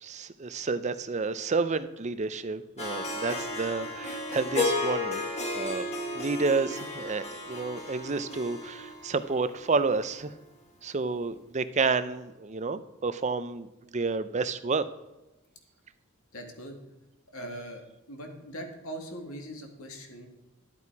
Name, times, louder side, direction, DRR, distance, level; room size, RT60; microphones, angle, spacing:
voice 1, 0.0-5.2 5.5-5.9 6.1-10.3 10.8-14.9, right 4 dB, 35° right, 12 dB, 0.5 m, -30 dB
Harp, 2.8-9.9, left 2 dB, 30° left, 1.7 m, -33 dB
voice 2, 16.3-16.8 17.3-20.3, right 1 dB, 85° left, 3 dB, 2.1 m, -41 dB
12.0 x 8.4 x 4.7 m, 1.0 s
head